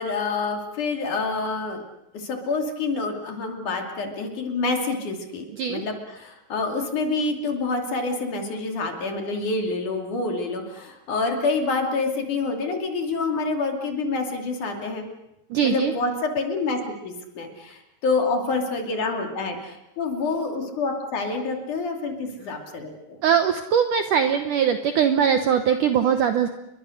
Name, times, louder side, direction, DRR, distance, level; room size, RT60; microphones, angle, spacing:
voice 1, 0.0-1.8 2.1-15.1 15.6-23.2, left 3 dB, 50° left, 3 dB, 3.9 m, -27 dB
voice 2, 15.5-15.9 23.2-26.5, right 8 dB, 70° right, 7 dB, 2.0 m, -21 dB
30.0 x 22.5 x 6.5 m, 0.87 s
omnidirectional pair, 4.9 m